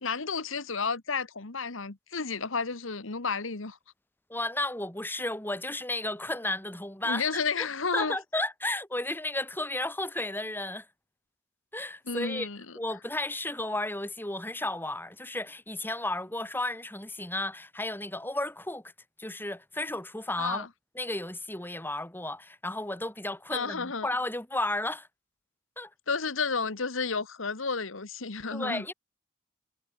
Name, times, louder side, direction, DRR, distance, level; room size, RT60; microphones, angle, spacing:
voice 1, 0.0-3.8 7.0-8.1 12.1-12.6 20.4-20.7 23.5-24.1 26.1-28.8, left 5 dB, 75° left, 1.5 m, -31 dB
voice 2, 4.3-7.3 7.6-7.7 7.9-10.9 11.7-12.5 12.8-18.9 19.2-20.7 21.0-25.1 25.8-25.9 28.5-28.9, left 2 dB, 10° left, 5.5 m, -33 dB
head